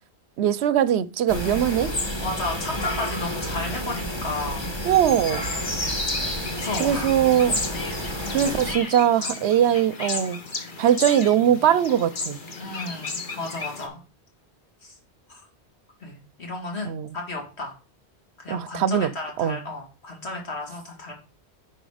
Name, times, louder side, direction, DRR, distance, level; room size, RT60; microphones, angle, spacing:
voice 1, 0.4-1.9 4.8-5.5 6.8-7.6 8.3-10.4 10.8-12.4 16.8-17.1 18.5-19.1 19.4-19.6, right 10 dB, 80° right, 0.8 m, -21 dB
sound 1, 1.3-8.7, equal, 25° left, 1.5 m, -29 dB
voice 2, 2.2-4.7 6.5-7.1 8.1-8.2 12.6-14.0 14.8-14.9 15.3-15.4 16.0-17.7 18.4-21.1, left 2 dB, 75° left, 2.5 m, -33 dB
sound 2, 5.8-13.9, left 3 dB, 50° left, 1.3 m, -35 dB
10.0 x 4.2 x 5.0 m
omnidirectional pair, 1.1 m